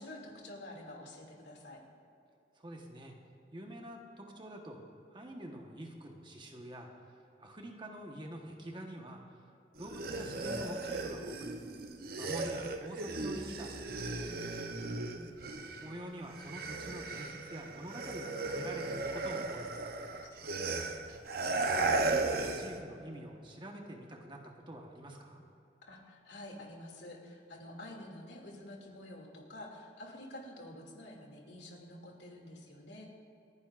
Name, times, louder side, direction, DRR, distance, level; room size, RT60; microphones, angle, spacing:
voice 1, 0.0-1.8 14.8-15.3 20.3-21.1 25.9-33.1, left 1 dB, 80° left, 0 dB, 2.5 m, -49 dB
voice 2, 2.6-3.1 3.5-4.8 5.1-6.9 7.4-9.2 9.8-11.6 12.2-14.3 15.8-19.9 21.6-25.4, right 1 dB, 25° right, 1 dB, 1.3 m, -46 dB
sound 1, 9.8-16.0 16.3-22.8, right 3 dB, 55° right, 0.8 m, -36 dB
28.5 x 10.5 x 2.5 m, 2.7 s
head